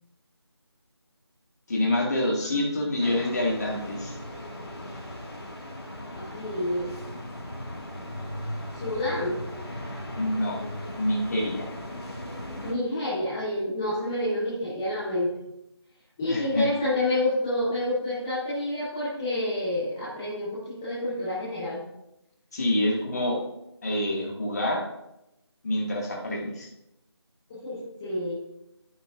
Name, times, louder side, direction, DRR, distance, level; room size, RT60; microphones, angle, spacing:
voice 1, 1.7-4.2 10.2-10.6 11.0-11.7 16.3-16.7 22.5-23.4 23.8-24.8 25.6-26.7, left 1 dB, 35° left, -2 dB, 2.0 m, -26 dB
voice 2, 2.4-3.2 6.1-7.0 8.7-9.5 12.6-15.3 16.2-21.8 27.5-28.4, left 1 dB, 5° left, -10 dB, 0.6 m, -29 dB
sound 1, 3.0-12.7, left 1 dB, 65° left, 2.9 m, -38 dB
13.5 x 6.0 x 2.5 m, 0.87 s
figure-of-eight pair, 165°, 14 cm